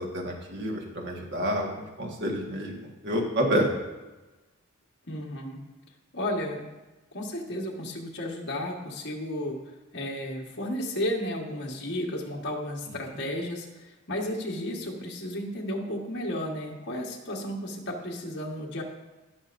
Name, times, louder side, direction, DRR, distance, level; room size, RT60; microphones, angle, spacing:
voice 1, 0.0-3.7 12.9-13.2, equal, 55° right, 0 dB, 1.6 m, -29 dB
voice 2, 5.1-5.6 6.1-6.7 7.1-9.6 9.9-13.7 14.1-18.8, left 1 dB, 55° left, -1 dB, 1.6 m, -33 dB
17.5 x 6.2 x 2.6 m, 1.1 s
head